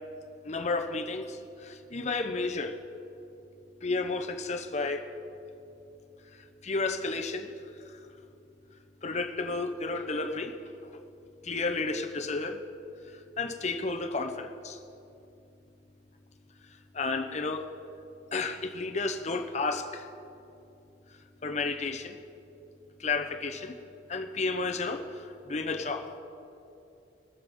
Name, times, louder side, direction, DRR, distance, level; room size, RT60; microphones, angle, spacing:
voice 1, 0.4-2.8 3.8-5.1 6.3-7.5 7.9-8.0 9.0-10.9 11.4-12.7 13.0-14.8 16.9-17.7 18.3-20.1 21.4-22.2 23.0-23.8 24.1-26.1, left 3 dB, 35° left, 6 dB, 0.7 m, -32 dB
20.5 x 7.5 x 4.5 m, 2.8 s
head